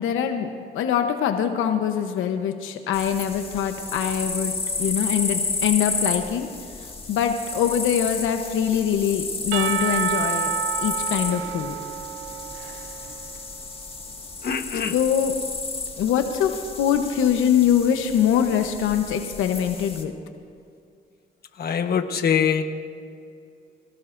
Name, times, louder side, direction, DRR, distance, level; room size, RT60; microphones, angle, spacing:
voice 1, 0.0-6.5 7.1-10.5 10.8-11.7 14.9-15.3 16.0-20.1, left 8 dB, 85° left, 6 dB, 1.0 m, -23 dB
sound 1, 2.9-20.0, left 3 dB, 30° left, 1.9 m, -32 dB
Percussion / Church bell, 9.5-13.6, right 9 dB, 80° right, 0.5 m, -29 dB
voice 2, 14.4-14.9 21.6-22.6, left 7 dB, 50° left, 6 dB, 1.3 m, -23 dB
26.0 x 17.5 x 2.6 m, 2.4 s
cardioid pair, 90°, 20 cm